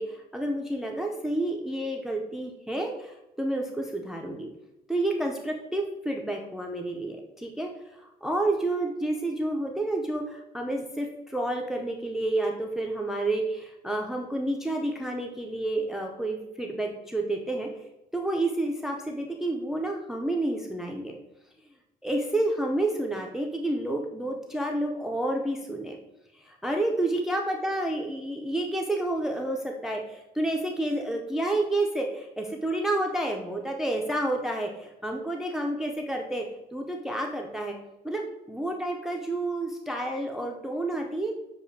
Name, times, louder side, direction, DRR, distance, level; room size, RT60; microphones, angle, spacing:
voice 1, 0.0-4.5 4.9-21.2 22.0-26.0 26.3-36.4 36.7-37.8 38.0-41.3, right 1 dB, ahead, 2 dB, 0.4 m, -30 dB
6.8 x 2.3 x 2.6 m, 0.94 s
cardioid pair, 110°, 17 cm